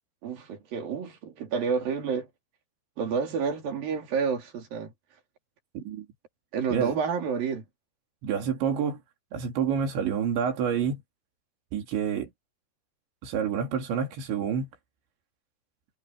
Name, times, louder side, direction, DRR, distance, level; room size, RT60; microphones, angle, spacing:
voice 1, 0.2-2.3 3.0-4.9 6.5-7.7, right 6 dB, 55° right, 4.9 m, -29 dB
voice 2, 5.8-6.1 6.7-7.0 8.2-9.0 9.3-11.0 11.7-12.3 13.2-14.7, right 7 dB, 90° right, 5.5 m, -28 dB
omnidirectional pair, 5.1 m